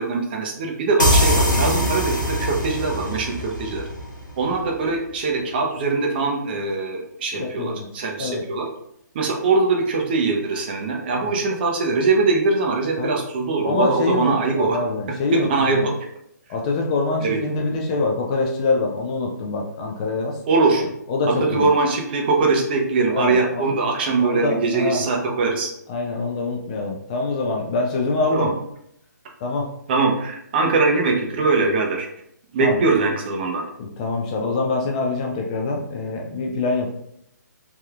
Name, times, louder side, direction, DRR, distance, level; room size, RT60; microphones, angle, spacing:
voice 1, 0.0-3.8 4.4-8.6 9.1-14.8 15.3-15.9 17.2-17.4 20.5-20.9 21.4-25.7 28.3-28.5 29.9-32.1 32.5-33.6, right 3 dB, 30° right, 1 dB, 0.6 m, -22 dB
sound 1, 1.0-4.5, left 1 dB, 90° left, 0.8 m, -22 dB
voice 2, 7.4-7.9 8.2-8.4 11.1-11.3 13.0-13.1 13.6-15.9 16.5-20.4 21.1-21.7 23.1-23.7 24.2-25.0 25.9-28.5 29.4-29.7 32.6-32.8 33.8-36.9, left 3 dB, 25° left, 0 dB, 0.4 m, -24 dB
3.3 x 2.7 x 2.3 m, 0.74 s
figure-of-eight pair, 135°, 10 cm